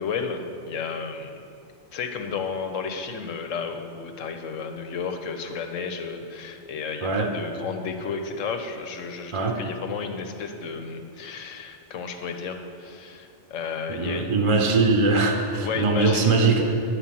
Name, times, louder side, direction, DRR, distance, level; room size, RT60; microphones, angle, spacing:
voice 1, 0.0-1.4 1.9-14.3 15.6-16.5, left 5 dB, 90° left, 5 dB, 1.2 m, -32 dB
voice 2, 7.0-7.3 9.3-9.6 13.9-16.7, right 3 dB, 35° right, 3 dB, 0.6 m, -21 dB
9.9 x 4.9 x 7.5 m, 2.5 s
omnidirectional pair, 1.3 m